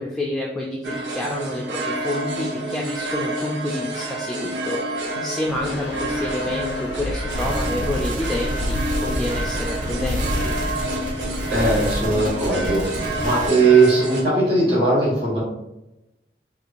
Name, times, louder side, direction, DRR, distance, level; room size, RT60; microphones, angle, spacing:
voice 1, 0.0-4.8 5.2-10.5, left 1 dB, 5° left, -3 dB, 0.3 m, -28 dB
sound 1, 0.8-14.2, right 1 dB, 90° right, 0.6 m, -29 dB
sound 2, 5.5-10.5, left 2 dB, 90° left, 0.4 m, -30 dB
sound 3, 7.3-13.5, equal, 45° right, 0.7 m, -29 dB
voice 2, 11.5-15.4, right 3 dB, 70° right, -7 dB, 1.4 m, -19 dB
4.4 x 2.9 x 2.5 m, 0.93 s
head